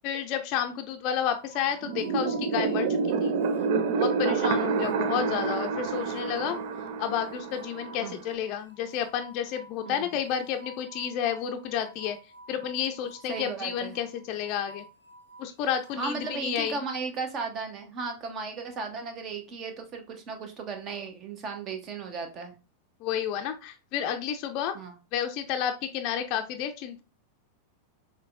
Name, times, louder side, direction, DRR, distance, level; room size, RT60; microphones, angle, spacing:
voice 1, 0.0-3.3 3.9-6.6 7.0-12.2 12.5-14.8 15.4-16.8 23.0-24.8 25.1-27.0, left 9 dB, 40° left, 5 dB, 0.5 m, -31 dB
sound 1, 1.3-17.0, right 1 dB, 85° right, 0.8 m, -51 dB
sound 2, 1.8-8.4, right 5 dB, 50° right, 0.4 m, -28 dB
voice 2, 13.3-13.9 16.0-22.6 24.7-25.0, right 4 dB, 30° right, 6 dB, 0.9 m, -35 dB
5.9 x 2.2 x 2.4 m, 0.30 s
figure-of-eight pair, 90°, 0 cm